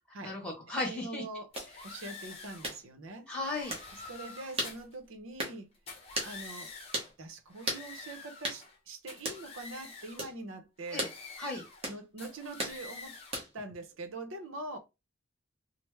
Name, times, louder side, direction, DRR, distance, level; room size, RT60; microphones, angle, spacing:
voice 1, 0.2-1.2 3.3-3.7 10.9-11.1 11.4-11.6, left 2 dB, 5° left, 1.2 m, -35 dB
voice 2, 0.8-1.5 1.8-3.3 4.1-5.7 6.2-6.7 7.2-11.1 11.9-13.2 13.5-14.8, right 2 dB, 75° right, 0.7 m, -43 dB
sound 1, 1.5-2.8 3.3-4.9 5.7-7.1 7.5-8.8 9.1-10.3 10.8-11.9 12.2-13.4, left 4 dB, 30° left, 0.7 m, -48 dB
sound 2, 1.5-1.7 2.6-2.8 3.7-3.9 4.6-4.8 5.4-5.6 6.1-6.3 6.9-7.1 7.7-7.9 8.4-8.6 9.2-9.4 10.2-10.4 11.0-11.2 11.8-12.0 12.6-12.8 13.3-13.6, right 1 dB, 30° right, 0.9 m, -35 dB
3.2 x 2.0 x 3.3 m
head